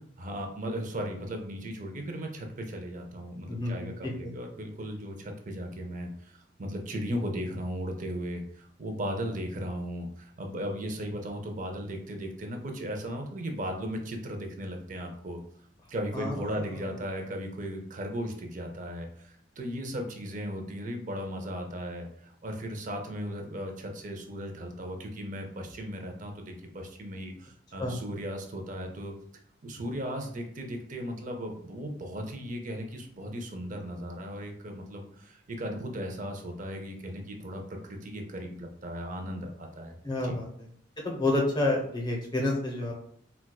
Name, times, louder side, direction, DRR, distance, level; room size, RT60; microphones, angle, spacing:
voice 1, 0.2-15.4 15.9-22.1 22.4-29.1 29.6-40.0 40.2-40.4, equal, 40° right, 3 dB, 0.5 m, -36 dB
voice 2, 3.5-4.3 16.1-16.6 27.8-28.0 40.0-40.7 41.0-42.9, left 2 dB, 20° left, -1 dB, 0.7 m, -29 dB
4.4 x 2.3 x 2.2 m, 0.64 s
head